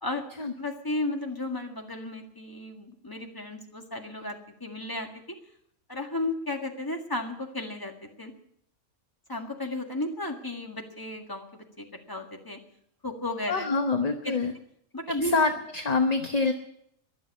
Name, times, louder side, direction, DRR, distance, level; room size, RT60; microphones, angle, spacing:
voice 1, 0.6-5.1 5.9-8.3 9.3-12.6 13.0-13.7 14.2-14.4 14.9-15.3, left 2 dB, 15° left, 3 dB, 1.8 m, -34 dB
voice 2, 13.5-14.5 15.2-16.5, left 4 dB, 30° left, 6 dB, 1.0 m, -25 dB
22.5 x 7.5 x 8.5 m, 0.73 s
omnidirectional pair, 1.5 m